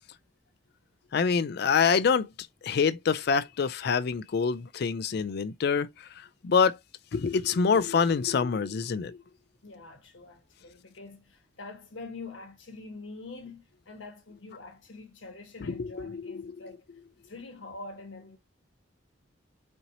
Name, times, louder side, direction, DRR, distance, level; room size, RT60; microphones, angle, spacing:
voice 1, 1.1-2.3 2.6-5.9 6.4-6.8 7.1-9.2 15.8-16.5, left 5 dB, 55° left, 0.4 m, -26 dB
voice 2, 9.6-16.9 17.2-18.4, left 3 dB, 75° left, 1.2 m, -45 dB
4.3 x 2.9 x 2.7 m
head